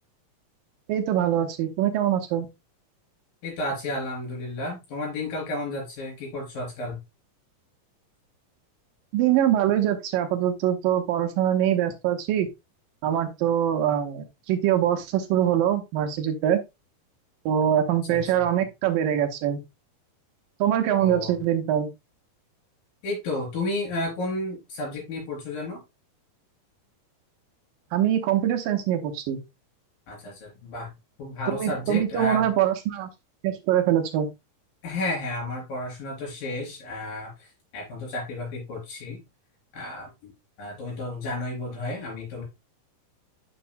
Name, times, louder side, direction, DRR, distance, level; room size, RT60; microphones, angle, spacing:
voice 1, 0.9-2.5 9.1-12.5 13.0-16.6 17.5-19.6 20.6-21.9 27.9-29.4 31.5-33.1 33.4-34.3, right 10 dB, 85° right, 2.8 m, -23 dB
voice 2, 3.4-7.0 18.1-18.4 21.0-21.4 23.0-25.8 30.1-30.9 31.2-32.5 34.8-37.3 37.7-39.2 39.7-40.3 40.6-42.4, left 2 dB, 80° left, 5.6 m, -32 dB
10.0 x 6.1 x 2.2 m
omnidirectional pair, 3.9 m